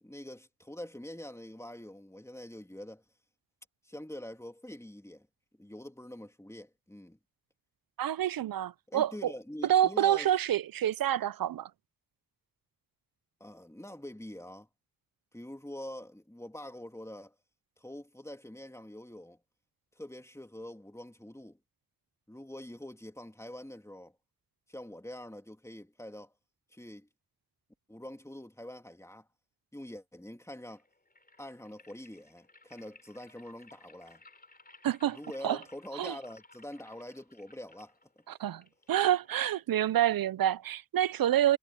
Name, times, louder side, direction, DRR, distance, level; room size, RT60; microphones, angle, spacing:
voice 1, 0.0-3.0 3.8-5.3 5.6-7.2 8.9-10.3 13.4-14.7 15.3-17.3 17.8-19.4 20.0-21.6 22.3-24.1 24.7-26.3 26.7-27.1 27.9-29.3 29.7-30.8 31.4-34.2 35.1-37.9, left 1 dB, 10° left, 2.9 m, -45 dB
voice 2, 8.0-9.3 9.6-11.7 34.8-35.2 35.4-35.6 35.9-36.1 38.3-38.6 38.9-41.6, right 11 dB, 85° right, 0.6 m, -27 dB
sound 1, 30.6-39.6, left 3 dB, 25° left, 4.2 m, -59 dB
cardioid pair, 65°, 34 cm